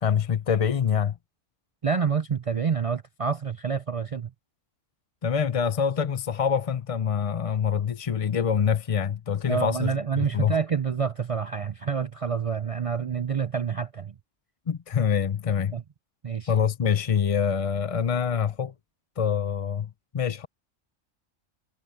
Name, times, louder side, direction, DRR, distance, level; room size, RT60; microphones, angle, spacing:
voice 1, 0.0-1.2 5.2-9.9 10.2-10.6 14.7-15.7 16.5-18.7 19.2-20.5, left 7 dB, 40° left, 0.5 m, -25 dB
voice 2, 1.8-4.3 9.5-14.1 15.7-15.8 16.2-16.5, right 6 dB, 60° right, 0.3 m, -28 dB
omnidirectional pair, 1.3 m